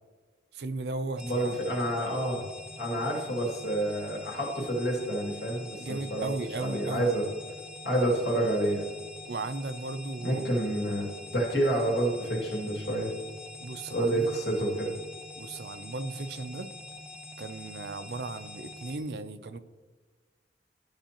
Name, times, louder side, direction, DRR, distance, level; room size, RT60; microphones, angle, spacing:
voice 1, 0.5-1.8 5.8-7.1 9.3-10.5 13.6-14.4 15.4-16.7 17.4-19.6, right 3 dB, 60° right, 11 dB, 0.5 m, -36 dB
voice 2, 1.2-2.4 2.8-6.3 6.6-7.2 7.8-8.9 10.2-11.1 11.3-13.1 13.9-14.9, right 1 dB, 75° left, -2 dB, 2.3 m, -28 dB
sound 1, 1.2-19.0, left 2 dB, 5° right, 0.5 m, -45 dB
11.5 x 5.6 x 2.9 m, 1.4 s
head